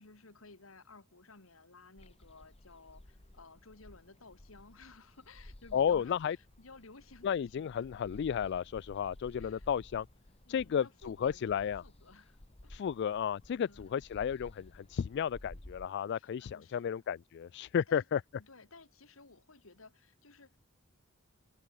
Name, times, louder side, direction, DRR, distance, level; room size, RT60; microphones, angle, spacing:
voice 1, 0.0-7.3 7.5-7.9 9.4-9.7 10.5-12.7 13.6-13.9 16.1-17.0 17.9-18.0 18.4-20.6, left 3 dB, 85° left, 2.3 m, -56 dB
sound 1, 2.0-15.9, left 1 dB, 30° left, 1.4 m, -55 dB
voice 2, 5.7-6.4 7.2-10.1 10.5-11.8 12.7-18.2, left 8 dB, 55° left, 0.3 m, -33 dB
open air
head